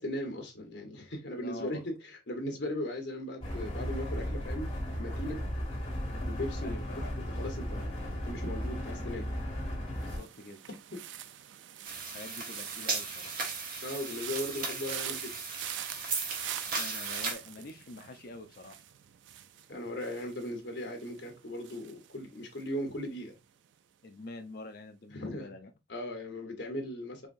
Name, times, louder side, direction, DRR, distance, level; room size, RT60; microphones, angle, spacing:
voice 1, 0.0-1.9 2.3-4.7 5.0-5.4 6.3-9.3 10.9-11.0 13.8-15.3 19.7-23.4 25.1-25.5 25.9-27.3, left 1 dB, 70° left, 1.2 m, -38 dB
voice 2, 1.4-1.8 6.6-7.1 9.9-10.6 12.1-13.3 16.8-18.8 24.0-25.7, left 2 dB, 55° left, 0.5 m, -46 dB
sound 1, 3.4-10.2, equal, 30° left, 2.0 m, -35 dB
sound 2, 10.0-23.0 23.3-23.7, right 11 dB, 90° right, 0.4 m, -45 dB
sound 3, 11.8-17.3, right 4 dB, 50° right, 1.0 m, -36 dB
4.7 x 2.7 x 2.5 m
head